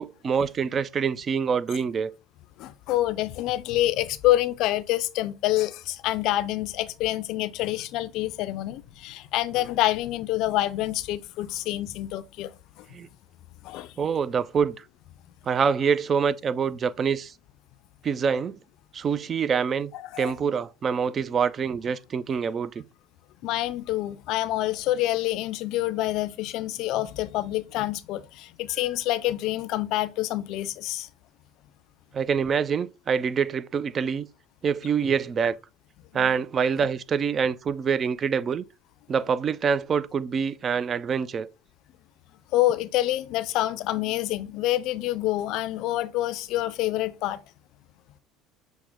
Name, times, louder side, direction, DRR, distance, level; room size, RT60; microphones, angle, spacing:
voice 1, 0.0-2.1 12.9-13.1 14.0-14.8 15.5-17.3 18.0-18.6 18.9-19.9 20.2-22.8 32.1-34.3 34.6-35.6 36.1-38.6 39.1-41.5, right 6 dB, 40° right, 0.3 m, -25 dB
voice 2, 2.6-12.9 13.6-13.9 20.1-20.3 23.4-31.1 36.1-36.3 42.5-47.4, left 15 dB, 65° left, 0.4 m, -27 dB
6.1 x 2.1 x 3.5 m
hypercardioid pair, 80°, 0 cm